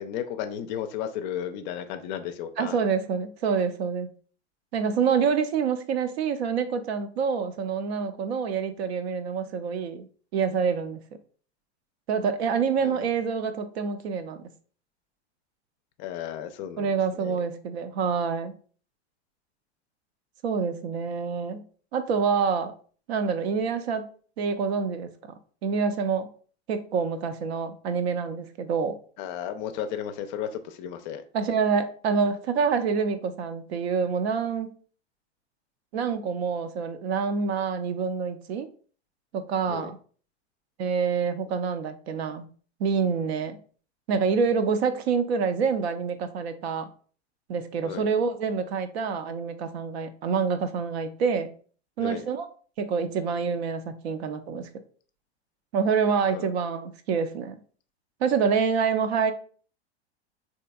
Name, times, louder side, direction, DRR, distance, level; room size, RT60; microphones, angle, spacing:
voice 1, 0.0-2.8 12.8-13.1 16.0-17.4 29.2-31.2 39.7-39.9 47.8-48.1 52.0-52.3 56.3-56.5, left 9 dB, 45° left, 0.4 m, -34 dB
voice 2, 2.6-4.1 4.7-10.1 10.3-11.0 12.1-14.4 16.8-18.5 20.4-21.6 21.9-22.7 23.1-24.1 24.4-25.1 25.6-26.3 26.7-29.0 31.3-34.7 35.9-38.7 39.3-40.0 40.8-42.5 42.8-43.6 44.1-46.9 47.5-51.5 52.0-52.5 52.8-54.7 55.7-57.6 58.2-59.3, right 6 dB, 70° right, 0.5 m, -27 dB
3.2 x 2.8 x 2.2 m
hypercardioid pair, 100°, 34 cm